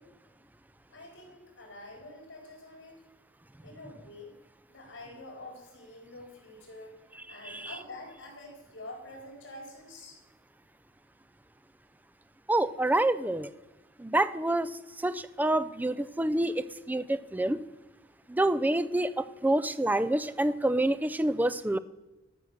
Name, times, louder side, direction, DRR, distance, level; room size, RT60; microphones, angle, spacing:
voice 1, 0.9-2.9 3.6-4.3 4.7-6.9 7.3-10.2, left 2 dB, 65° left, 0 dB, 4.3 m, -47 dB
voice 2, 7.4-7.8 12.5-13.5 14.0-17.6 18.3-21.8, right 1 dB, 10° right, 14 dB, 0.4 m, -27 dB
12.5 x 6.2 x 6.6 m, 1.1 s
head